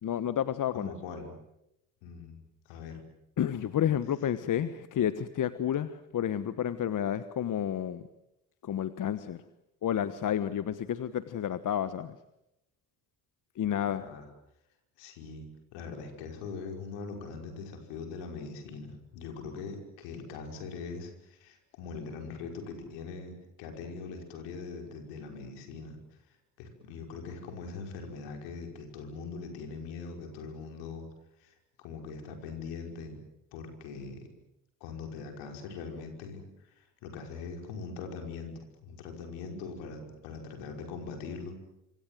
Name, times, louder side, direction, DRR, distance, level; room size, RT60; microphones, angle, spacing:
voice 1, 0.0-0.9 3.4-8.0 8.6-9.4 9.8-12.2 13.5-14.1, left 10 dB, 45° left, 13 dB, 1.3 m, -30 dB
voice 2, 0.7-1.3 2.0-3.0 13.8-14.3 15.0-15.5 15.7-26.0 26.6-31.1 31.4-33.2 33.5-34.3 34.8-41.5, left 4 dB, 70° left, 4 dB, 5.5 m, -42 dB
26.0 x 25.5 x 7.8 m, 0.85 s
hypercardioid pair, 55°, 43 cm